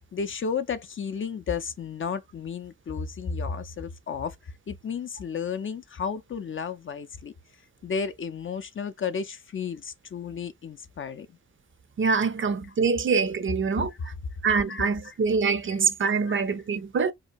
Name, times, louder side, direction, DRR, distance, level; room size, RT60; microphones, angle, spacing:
voice 1, 0.1-7.3 7.8-11.3 12.4-12.5 14.0-14.1 14.7-15.1 15.7-15.8 16.3-16.4, left 6 dB, 40° left, 0.4 m, -33 dB
voice 2, 12.0-13.9 14.4-17.1, right 5 dB, 40° right, 0.5 m, -24 dB
2.7 x 2.2 x 2.5 m
supercardioid pair, 45°, 31 cm